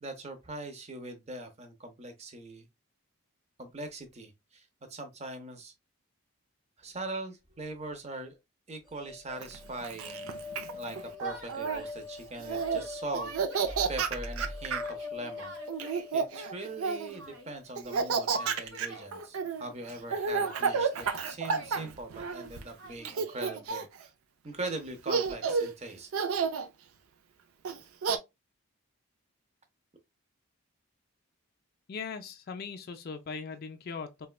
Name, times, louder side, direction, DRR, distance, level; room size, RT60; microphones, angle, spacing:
voice 1, 0.0-2.7 3.6-5.7 6.8-8.4 8.7-15.9 16.1-24.1 24.4-26.1, right 2 dB, 30° right, 0.6 m, -41 dB
sound 1, 8.9-18.1, left 3 dB, ahead, 0.8 m, -43 dB
Laughter, 9.4-11.8 12.4-12.8 13.1-14.9 15.7-17.2 17.8-22.6 23.1-24.0 24.7-24.8 25.1-25.7 26.1-26.7 27.7-28.2, right 5 dB, 75° right, 0.4 m, -31 dB
Yell, 10.9-11.9 12.6-13.9 14.8-16.1 17.1-17.6 17.9-19.2 20.4-21.9 22.8-23.6, right 1 dB, 55° right, 1.0 m, -47 dB
voice 2, 31.9-34.3, left 5 dB, 45° left, 0.4 m, -39 dB
4.0 x 2.2 x 2.3 m
head